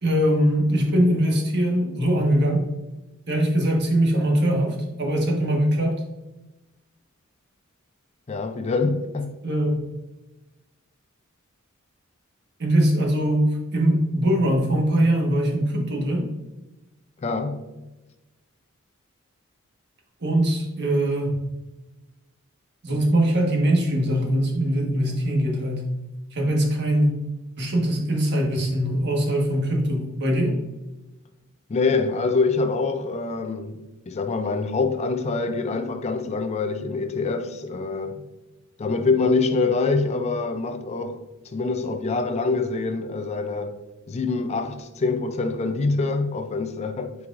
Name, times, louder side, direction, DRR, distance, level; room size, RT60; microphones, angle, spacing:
voice 1, 0.0-2.7 3.3-6.0 9.4-9.8 12.6-16.3 20.2-21.4 22.8-25.9 26.3-27.1 27.6-30.6, right 1 dB, 55° right, 1.4 m, -22 dB
voice 2, 8.3-9.4 17.2-17.6 31.7-38.2 38.8-43.8 44.1-47.2, left 4 dB, 30° left, 0.4 m, -25 dB
8.6 x 4.7 x 2.5 m
head